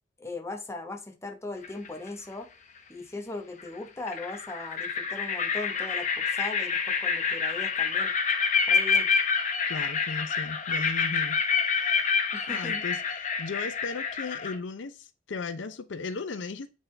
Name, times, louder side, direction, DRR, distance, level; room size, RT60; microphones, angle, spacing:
voice 1, 0.2-2.5 2.9-8.1 8.7-9.1 12.3-12.8, left 2 dB, 15° left, 1.0 m, -39 dB
sound 1, 1.6-2.1 3.6-3.7 4.1-14.6, left 5 dB, 45° left, 0.9 m, -27 dB
voice 2, 9.7-11.4 11.7-12.1 12.5-16.7, left 4 dB, 85° left, 0.6 m, -36 dB
8.2 x 3.6 x 3.3 m
head